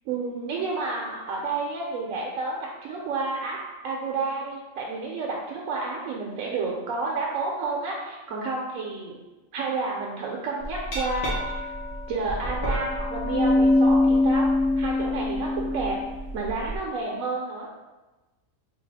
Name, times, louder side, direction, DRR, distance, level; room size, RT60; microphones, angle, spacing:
voice 1, 0.1-3.6 3.8-9.2 9.5-11.7 12.1-14.5 14.8-16.0 16.3-17.7, right 3 dB, 80° right, -2 dB, 1.0 m, -30 dB
Glass, 10.6-16.8, left 2 dB, 90° left, 1.4 m, -24 dB
3.8 x 2.3 x 4.0 m, 1.1 s
omnidirectional pair, 1.4 m